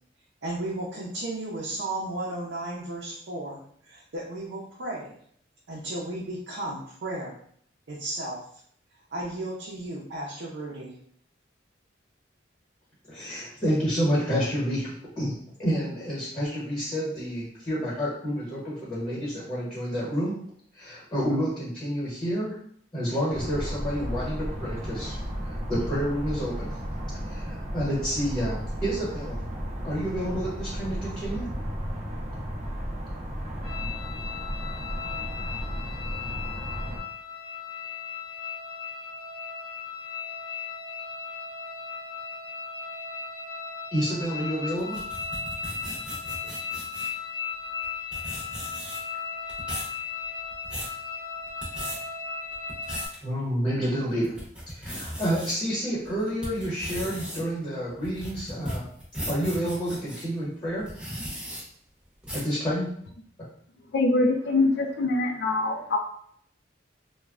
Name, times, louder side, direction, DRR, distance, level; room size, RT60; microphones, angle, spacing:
voice 1, 0.4-5.1 5.7-7.4 7.9-8.4 9.1-10.9, right 1 dB, 80° right, -4 dB, 0.5 m, -34 dB
voice 2, 13.1-15.3 15.6-20.4 20.8-22.5 22.9-25.2 25.4-26.7 27.3-28.6 28.8-29.4 29.8-31.5 43.9-45.0 53.2-54.3 54.7-58.8 59.3-60.8 62.3-62.9, equal, 25° left, -7 dB, 1.1 m, -29 dB
sound 1, 23.3-37.0, equal, 35° right, 0.6 m, -34 dB
sound 2, 33.6-53.1, left 6 dB, 45° left, 0.9 m, -36 dB
sound 3, 44.8-47.2 47.8-47.9 48.1-49.2 49.5-49.9 50.4-50.9 51.5-52.0 52.5-53.2 53.7-53.8 54.2-55.5 56.0-60.2 60.8-61.6 62.2-62.5, equal, 5° right, 0.8 m, -37 dB
voice 3, 63.9-66.0, left 2 dB, 65° left, 3 dB, 0.3 m, -23 dB
3.1 x 2.2 x 2.4 m, 0.63 s
head